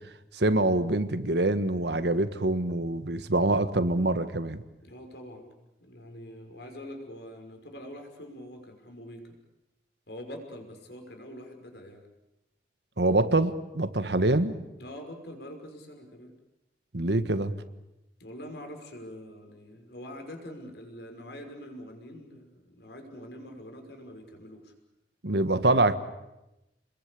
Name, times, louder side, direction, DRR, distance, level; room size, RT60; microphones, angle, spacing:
voice 1, 0.3-4.6 13.0-14.5 16.9-17.5 25.2-26.0, right 2 dB, 75° right, 11 dB, 1.6 m, -25 dB
voice 2, 4.8-5.5 5.8-9.4 10.1-12.0 14.8-16.3 18.2-24.7, equal, 75° left, 4 dB, 5.7 m, -44 dB
28.5 x 22.0 x 8.5 m, 0.94 s
head